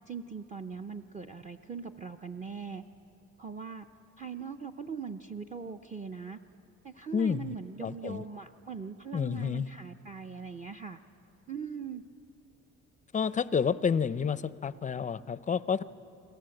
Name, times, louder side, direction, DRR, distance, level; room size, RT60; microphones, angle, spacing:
voice 1, 0.0-2.8 3.4-3.9 4.2-6.4 6.8-11.0 11.5-12.0, right 5 dB, 25° right, 8 dB, 0.6 m, -41 dB
voice 2, 7.1-7.5 7.8-8.2 9.1-9.7 13.1-15.8, left 6 dB, 25° left, 16 dB, 0.5 m, -29 dB
29.5 x 21.0 x 7.8 m, 2.7 s
cardioid pair, 140°, 30 cm